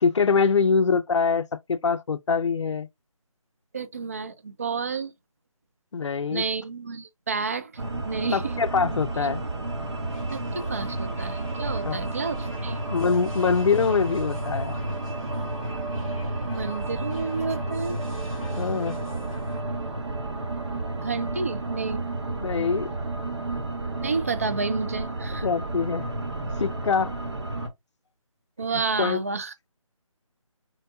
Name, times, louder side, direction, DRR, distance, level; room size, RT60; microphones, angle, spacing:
voice 1, 0.0-2.9 5.9-6.4 8.3-9.4 11.8-12.0 12.9-14.8 18.6-19.0 22.4-22.9 25.4-26.1 26.6-27.2 29.0-29.2, left 5 dB, 55° left, 0.5 m, -24 dB
voice 2, 3.7-5.1 6.3-7.7 8.0-8.5 10.3-12.8 16.4-18.0 21.0-22.0 24.0-25.5 28.6-29.5, right 4 dB, 25° right, 0.4 m, -30 dB
sound 1, 7.8-27.7, right 2 dB, 55° right, 1.1 m, -31 dB
sound 2, 10.1-19.6, left 3 dB, 5° left, 0.7 m, -50 dB
4.4 x 2.2 x 2.7 m
figure-of-eight pair, 155°, 18 cm